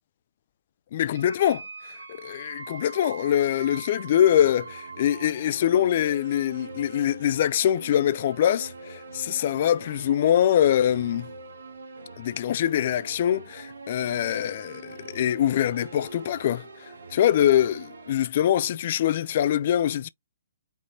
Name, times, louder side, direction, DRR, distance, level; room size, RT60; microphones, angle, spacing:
voice 1, 0.9-1.6 2.2-11.3 12.2-16.7 17.1-20.1, left 10 dB, 50° left, 0.3 m, -23 dB
sound 1, 1.1-18.1, right 3 dB, 70° right, 1.0 m, -43 dB
5.3 x 2.9 x 2.5 m
figure-of-eight pair, 130°, 0 cm